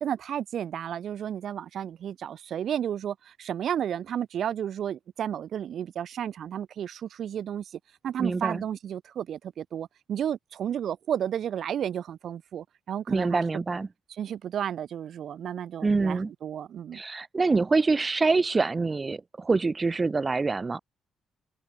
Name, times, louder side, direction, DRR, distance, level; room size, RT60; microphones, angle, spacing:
voice 1, 0.0-7.6 8.0-13.4 14.2-17.0, right 9 dB, 65° right, 0.5 m, -32 dB
voice 2, 8.2-8.6 13.1-13.9 15.8-16.3 16.9-20.8, right 3 dB, 25° right, 1.2 m, -25 dB
cardioid pair, 90°, 0 cm